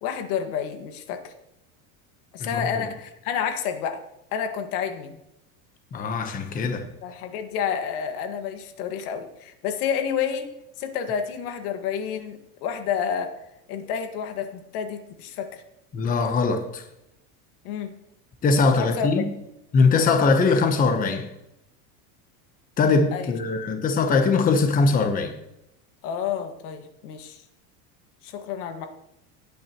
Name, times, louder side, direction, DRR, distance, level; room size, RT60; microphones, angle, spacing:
voice 1, 0.0-1.3 2.3-4.0 4.3-5.2 7.0-10.5 10.8-13.4 13.7-15.6 17.6-17.9 18.8-19.1 23.1-23.3 26.0-27.4 28.2-28.9, left 7 dB, 75° left, 1.8 m, -29 dB
voice 2, 2.5-2.9 5.9-6.9 15.9-16.8 18.4-19.3 19.7-21.3 22.8-25.3, left 4 dB, 20° left, 0.9 m, -21 dB
18.0 x 8.8 x 3.0 m
supercardioid pair, 160°, 45 cm